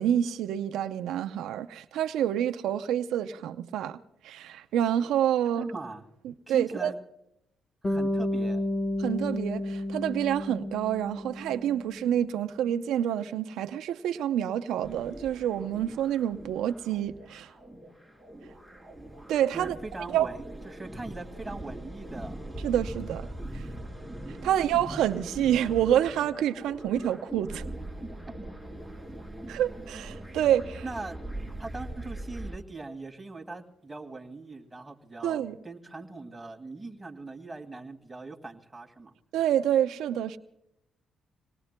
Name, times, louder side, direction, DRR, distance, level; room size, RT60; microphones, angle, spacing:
voice 1, 0.0-4.0 4.2-5.7 6.5-6.9 9.0-17.5 19.3-19.8 20.1-20.3 22.6-23.3 23.5-23.7 24.4-27.6 29.5-30.8 35.2-35.6 39.3-40.4, right 10 dB, 85° right, 0.6 m, -27 dB
voice 2, 5.6-6.1 6.5-7.0 7.8-8.6 19.5-22.4 24.3-24.7 28.3-28.4 30.8-31.2 31.6-39.2, right 3 dB, 15° right, 2.1 m, -40 dB
Bass guitar, 7.8-12.1, left 1 dB, 30° left, 4.5 m, -31 dB
sound 1, 14.8-32.6, right 1 dB, 5° left, 4.0 m, -41 dB
27.0 x 19.0 x 2.2 m
cardioid pair, 90°, 0 cm